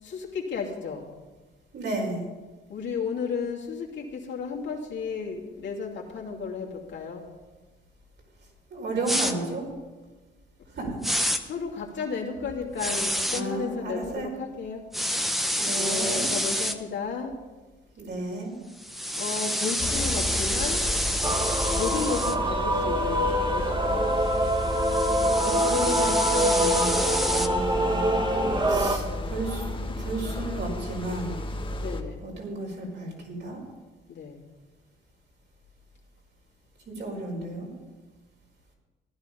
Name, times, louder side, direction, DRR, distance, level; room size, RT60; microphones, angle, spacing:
voice 1, 0.0-1.1 2.7-7.2 11.4-14.8 15.7-17.3 19.2-20.8 21.7-24.2 28.3-29.3 29.9-30.0 31.8-32.4 34.1-34.5, left 5 dB, 70° left, -1 dB, 2.7 m, -33 dB
voice 2, 1.7-2.2 8.7-9.7 10.7-11.0 13.3-14.3 15.6-16.3 18.0-18.6 25.4-27.0 27.3-28.3 28.6-29.6 30.0-31.4 32.2-33.6 36.9-37.7, right 2 dB, 60° right, -1 dB, 5.0 m, -33 dB
sound 1, 9.1-9.3 11.0-11.4 12.8-13.4 14.9-16.8 18.8-22.4 24.5-27.5, equal, ahead, 1.0 m, -28 dB
sound 2, 19.8-32.0, left 1 dB, 25° left, 1.3 m, -33 dB
Male singing / Female singing / Musical instrument, 21.2-29.0, right 1 dB, 20° right, 1.4 m, -25 dB
15.0 x 11.0 x 5.3 m, 1.2 s
cardioid pair, 90°, 20 cm